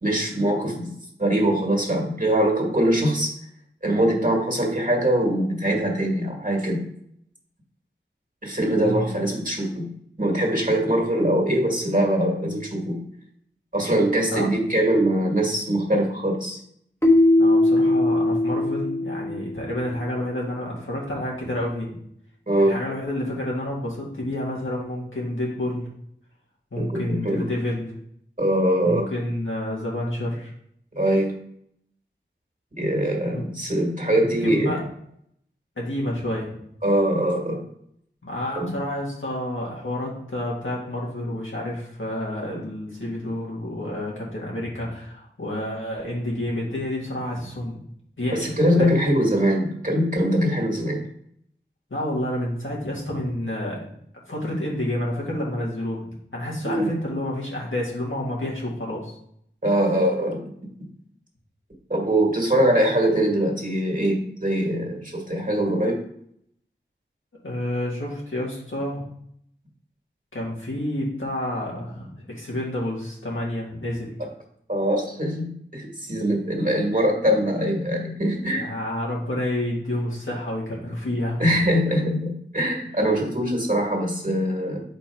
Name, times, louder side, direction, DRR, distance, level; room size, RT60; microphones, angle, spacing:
voice 1, 0.0-0.9 1.2-3.3 3.8-6.8 8.4-9.9 10.2-13.0 13.7-16.6 22.5-22.8 26.8-27.5 28.4-29.1 31.0-31.3 32.8-34.8 36.8-37.6 38.5-38.7 48.3-51.0 56.6-56.9 59.6-60.4 61.9-66.0 74.2-74.3 74.7-78.6 81.4-84.8, right 1 dB, 40° right, 0 dB, 1.8 m, -22 dB
Keyboard (musical), 17.0-19.9, left 1 dB, 15° left, 1.0 m, -20 dB
voice 2, 17.4-21.9 22.7-25.8 26.7-27.9 28.8-30.5 33.3-33.4 34.0-34.8 35.8-36.5 38.2-47.8 48.2-48.5 48.8-48.9 51.9-53.9 54.3-56.0 56.3-59.1 64.8-64.9 67.4-69.0 70.3-72.1 72.4-74.1 78.5-81.5, left 1 dB, 90° left, -4 dB, 1.9 m, -29 dB
5.7 x 4.4 x 4.5 m, 0.70 s
wide cardioid pair, 50°, 20 cm